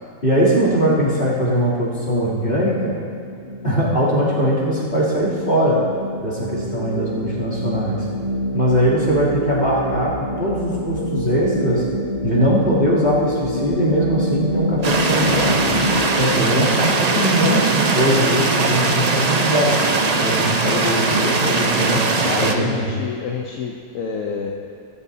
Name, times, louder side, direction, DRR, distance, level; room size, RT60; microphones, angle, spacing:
voice 1, 0.2-3.0 3.6-5.8 6.2-8.0 8.5-11.8 12.2-15.6 16.2-19.8 20.2-22.9, equal, 30° left, -9 dB, 3.4 m, -20 dB
sound 1, 2.9-16.3, equal, 25° right, 1.2 m, -27 dB
sound 2, 14.8-22.5, right 3 dB, 50° right, 0.4 m, -20 dB
voice 2, 21.7-24.5, left 6 dB, 60° left, 1 dB, 1.0 m, -28 dB
16.0 x 13.5 x 2.8 m, 2.3 s
omnidirectional pair, 1.8 m